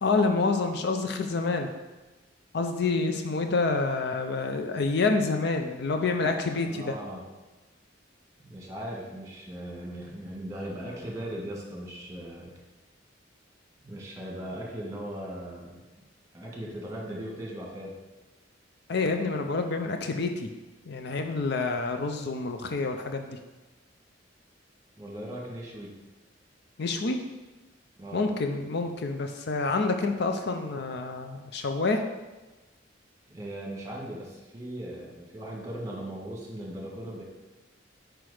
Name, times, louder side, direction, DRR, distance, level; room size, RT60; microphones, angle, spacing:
voice 1, 0.0-1.7 2.5-6.9 18.9-20.5 20.8-23.4 26.8-27.2 28.1-32.0, left 3 dB, 60° left, 6 dB, 0.5 m, -28 dB
voice 2, 6.5-7.2 8.4-12.5 13.8-15.8 16.3-18.0 25.0-26.0 28.0-28.2 33.3-37.2, right 1 dB, 20° right, -2 dB, 1.5 m, -38 dB
6.1 x 4.7 x 4.8 m, 1.2 s
head